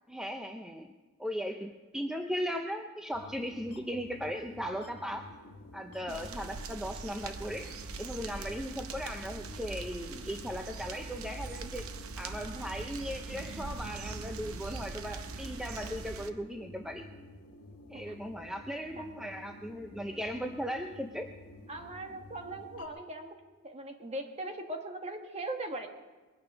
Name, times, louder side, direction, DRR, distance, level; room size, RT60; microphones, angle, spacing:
voice 1, 0.1-0.9 1.2-5.3 5.7-11.9 12.2-17.1 17.9-21.3, equal, 5° right, 4 dB, 0.5 m, -37 dB
sound 1, 3.1-22.9, left 1 dB, 85° left, 1.8 m, -51 dB
voice 2, 6.1-6.4 17.9-18.1 19.0-19.1 21.7-23.4 23.6-25.9, right 1 dB, 30° right, 4 dB, 1.3 m, -40 dB
sound 2, 6.1-16.3, right 4 dB, 70° right, 0.8 m, -42 dB
21.5 x 9.6 x 5.4 m, 1.2 s
head